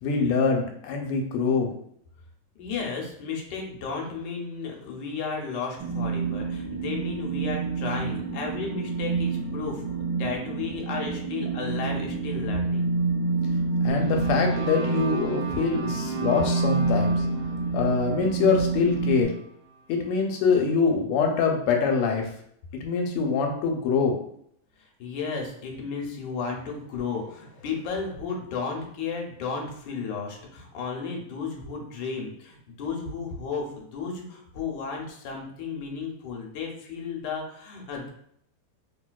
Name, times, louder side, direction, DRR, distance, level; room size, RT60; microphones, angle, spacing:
voice 1, 0.0-1.7 13.8-17.2 17.7-19.3 19.9-22.3 22.7-24.2, left 5 dB, 90° left, 3 dB, 1.5 m, -24 dB
voice 2, 2.6-12.9 24.8-38.1, left 5 dB, 70° left, 0 dB, 1.2 m, -33 dB
sound 1, 5.8-19.2, right 4 dB, 30° right, 0.9 m, -28 dB
sound 2, 13.9-20.1, right 4 dB, 75° right, 0.9 m, -39 dB
3.1 x 2.7 x 2.2 m, 0.68 s
omnidirectional pair, 2.4 m